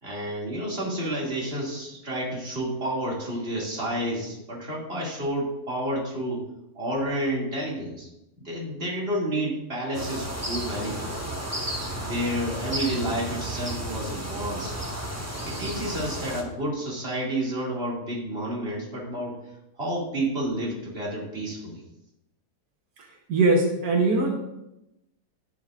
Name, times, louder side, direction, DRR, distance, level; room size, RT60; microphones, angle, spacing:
voice 1, 0.0-6.4 6.7-8.1 8.4-11.2 11.9-14.7 15.5-19.4 19.7-21.8, right 1 dB, 35° right, -4 dB, 2.8 m, -30 dB
sound 1, 9.9-16.4, right 1 dB, 10° right, 1.0 m, -33 dB
voice 2, 23.0-24.4, right 3 dB, 80° right, 1 dB, 1.7 m, -22 dB
10.5 x 10.5 x 2.5 m, 0.88 s
omnidirectional pair, 1.7 m